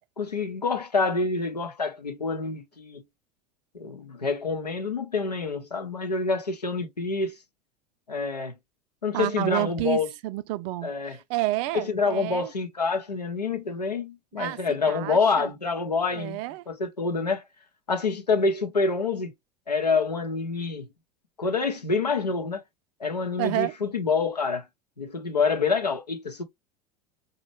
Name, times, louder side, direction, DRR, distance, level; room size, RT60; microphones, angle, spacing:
voice 1, 0.2-3.0 3.7-7.4 8.1-8.5 9.0-10.1 10.8-11.2 11.7-16.4 16.7-17.4 17.9-19.3 19.7-20.9 21.4-22.6 23.0-24.7 25.0-26.4, left 4 dB, 90° left, 0.7 m, -27 dB
voice 2, 9.1-12.5 14.3-15.5 16.1-16.6 23.4-23.7, right 17 dB, 50° right, 0.5 m, -30 dB
4.2 x 2.2 x 3.1 m
figure-of-eight pair, 80°, 20 cm